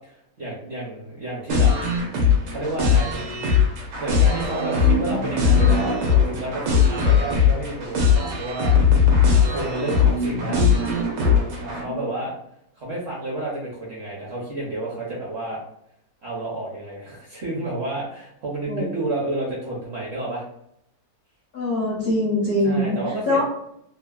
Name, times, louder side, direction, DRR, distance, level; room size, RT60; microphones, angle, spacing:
voice 1, 0.4-1.7 2.5-9.0 9.3-10.7 11.6-12.4 12.8-15.6 16.2-20.4 22.6-23.4, right 2 dB, 55° right, -5 dB, 0.7 m, -30 dB
sound 1, 1.5-11.8, left 6 dB, 90° right, 1.4 m, -19 dB
voice 2, 21.5-23.4, left 1 dB, 55° left, -5 dB, 0.5 m, -23 dB
3.2 x 2.1 x 2.3 m, 0.76 s
omnidirectional pair, 1.9 m